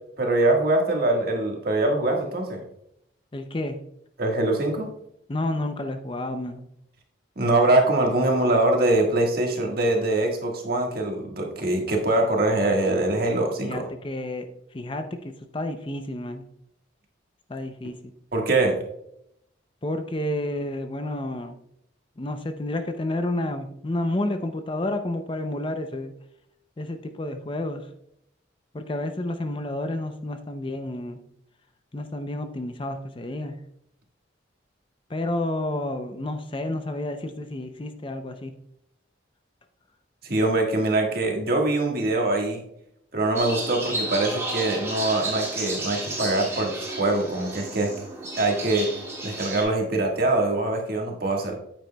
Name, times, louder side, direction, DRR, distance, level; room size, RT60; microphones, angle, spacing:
voice 1, 0.2-2.6 4.2-4.9 7.3-13.8 18.3-18.8 40.2-42.6 43.1-47.9 48.4-48.9 49.2-51.5, right 2 dB, 50° right, 1 dB, 1.6 m, -23 dB
voice 2, 3.3-3.8 5.3-6.6 13.6-14.5 14.7-16.4 17.5-18.1 19.8-21.6 22.2-26.1 26.8-27.9 28.7-31.2 31.9-33.6 35.1-38.5, left 1 dB, 25° left, 7 dB, 0.5 m, -30 dB
sound 1, 43.4-49.6, right 2 dB, 15° right, 2.3 m, -32 dB
9.1 x 9.0 x 2.2 m, 0.75 s
head